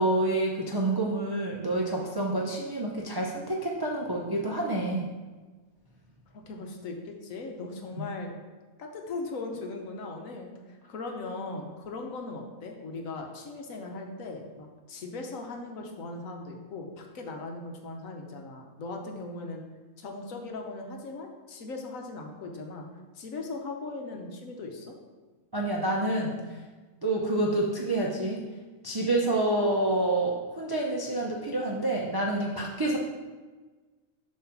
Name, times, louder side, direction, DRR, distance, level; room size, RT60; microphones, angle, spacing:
voice 1, 0.0-5.1 8.0-8.1 25.5-26.4 27.0-28.4 28.8-33.0, right 2 dB, 35° right, -2 dB, 0.4 m, -28 dB
voice 2, 6.3-8.4 8.8-10.5 10.9-19.6 20.0-22.9 23.1-24.9, left 3 dB, 70° left, 2 dB, 1.2 m, -39 dB
7.3 x 3.2 x 5.8 m, 1.3 s
omnidirectional pair, 1.5 m